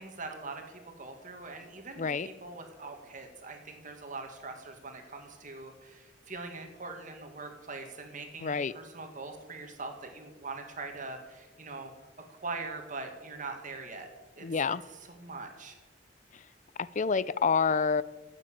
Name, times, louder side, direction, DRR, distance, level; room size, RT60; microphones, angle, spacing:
voice 1, 0.0-11.9 12.3-14.1 14.4-14.5 15.1-15.8, right 3 dB, 45° right, 4 dB, 2.0 m, -42 dB
voice 2, 2.0-2.3 8.4-8.7 14.4-14.8 16.3-16.4 16.8-18.0, left 5 dB, 40° left, 18 dB, 0.5 m, -28 dB
15.0 x 8.5 x 8.8 m, 1.3 s
head